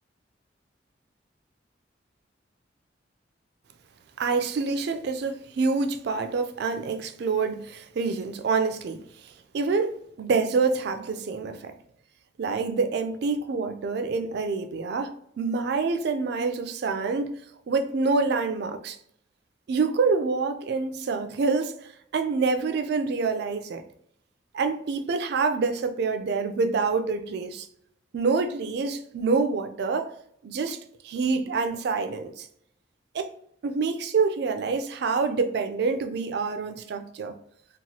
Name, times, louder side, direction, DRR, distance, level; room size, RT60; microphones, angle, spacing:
voice 1, 4.2-11.7 12.4-17.4 17.7-19.0 19.7-23.8 24.5-27.7 28.1-30.1 30.4-30.8 31.0-32.5 33.1-33.3 33.6-37.3, right 4 dB, 60° right, 0.3 m, -27 dB
2.9 x 2.2 x 2.7 m
head